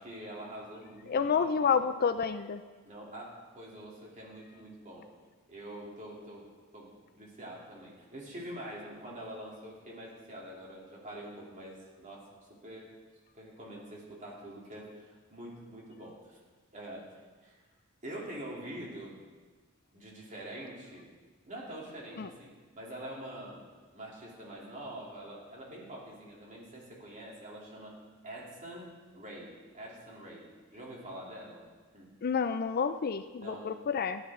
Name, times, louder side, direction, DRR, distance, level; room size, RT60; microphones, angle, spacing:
voice 1, 0.0-1.5 2.8-5.1 5.5-6.5 6.7-12.9 13.3-16.4 16.7-17.6 18.0-19.2 19.9-21.1 21.5-23.7 23.9-28.0 28.2-31.6 31.9-32.1 33.4-33.8, right 1 dB, 35° right, -4 dB, 3.1 m, -45 dB
voice 2, 1.1-2.6 22.2-22.3 32.2-34.2, left 6 dB, 45° left, 11 dB, 0.4 m, -29 dB
15.0 x 10.5 x 3.7 m, 1.4 s
head